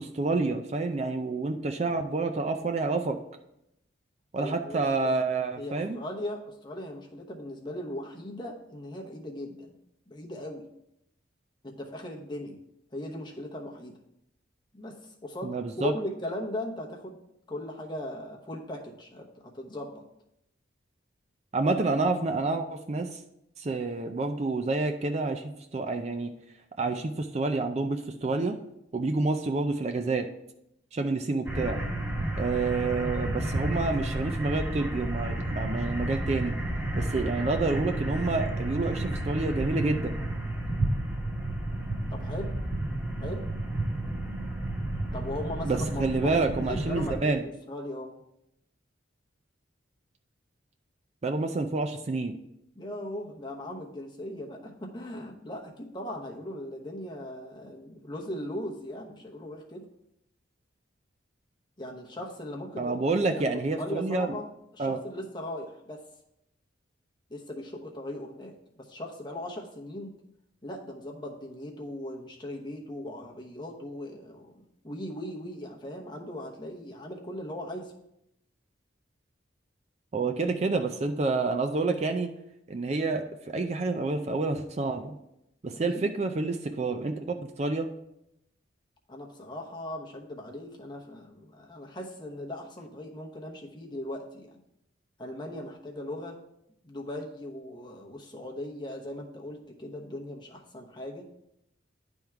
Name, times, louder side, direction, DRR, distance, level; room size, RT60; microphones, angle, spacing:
voice 1, 0.0-3.2 4.3-6.0 15.4-15.9 21.5-23.2 23.6-26.3 26.8-28.6 28.9-30.3 30.9-31.8 32.4-36.5 36.9-40.2 45.6-47.4 51.2-52.3 62.7-64.3 64.8-65.0 80.1-82.3 82.7-85.2 85.6-87.9, right 3 dB, 35° right, 6 dB, 0.4 m, -28 dB
voice 2, 4.4-5.1 5.6-9.8 10.1-10.6 11.6-12.6 12.9-13.9 14.7-17.2 17.5-20.0 42.1-42.5 43.2-43.5 45.1-46.3 46.6-48.2 52.8-59.9 61.8-63.0 63.5-64.5 64.7-66.0 67.3-70.1 70.6-77.9 85.7-86.1 89.1-94.6 95.2-96.4 96.8-101.3, left 1 dB, 25° left, 0 dB, 0.9 m, -38 dB
sound 1, 31.5-47.2, right 1 dB, 15° right, 1.2 m, -31 dB
10.5 x 3.6 x 4.5 m, 0.80 s
head